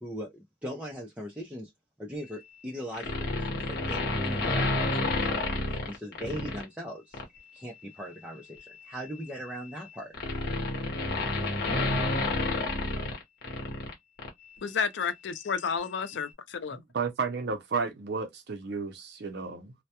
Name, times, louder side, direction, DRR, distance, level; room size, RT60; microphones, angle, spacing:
voice 1, 0.0-1.7 2.0-7.2 7.5-10.1, equal, 5° right, 0.5 m, -40 dB
sound 1, 2.9-6.6 7.1-7.4 8.6-13.9 14.2-14.3, left 2 dB, 60° left, 0.9 m, -30 dB
voice 2, 14.6-16.8, left 6 dB, 75° left, 0.4 m, -31 dB
voice 3, 16.9-19.7, right 5 dB, 65° right, 0.5 m, -32 dB
2.2 x 2.1 x 2.7 m
head